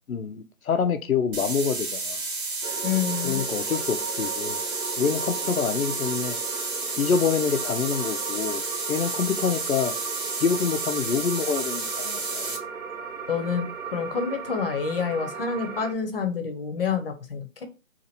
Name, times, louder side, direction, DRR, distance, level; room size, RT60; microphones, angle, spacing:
voice 1, 0.1-2.2 3.2-4.6 5.0-6.4 7.0-8.6 8.9-9.9 10.4-12.6, left 6 dB, 85° left, 0.6 m, -26 dB
sound 1, 1.3-12.6, right 3 dB, 40° right, 1.0 m, -31 dB
sound 2, 2.6-15.9, right 5 dB, 80° right, 1.1 m, -36 dB
voice 2, 2.8-3.4 13.3-13.6 13.9-17.5, left 6 dB, 45° left, 0.7 m, -27 dB
2.9 x 2.5 x 4.0 m
figure-of-eight pair, 150°, 41 cm